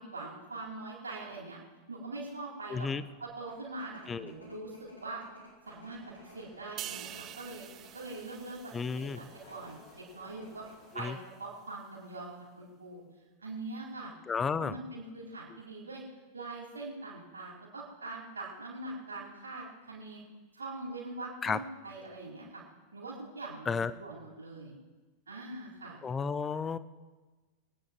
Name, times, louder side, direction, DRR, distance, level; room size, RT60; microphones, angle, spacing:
voice 1, 0.0-1.6 1.9-2.9 3.2-5.2 5.7-7.7 7.9-10.7 10.9-13.0 13.4-14.1 14.4-16.0 16.3-20.2 20.5-22.6 22.9-24.8 25.3-26.0, right 2 dB, 75° right, -4 dB, 4.6 m, -43 dB
voice 2, 2.7-3.0 4.1-4.3 8.7-9.2 11.0-11.2 14.3-14.8 21.4-21.6 23.7-23.9 26.0-26.8, left 5 dB, 20° left, 15 dB, 0.7 m, -32 dB
sound 1, 3.2-8.6 9.3-9.7 10.1-10.2 10.4-10.9, left 1 dB, 80° left, 4.1 m, -56 dB
sound 2, 5.6-11.1, left 3 dB, 45° left, 3.4 m, -59 dB
sound 3, 6.8-10.3 10.7-10.9, right 13 dB, 35° right, 0.4 m, -47 dB
23.5 x 9.8 x 4.7 m, 1.3 s
figure-of-eight pair, 90°, 0 cm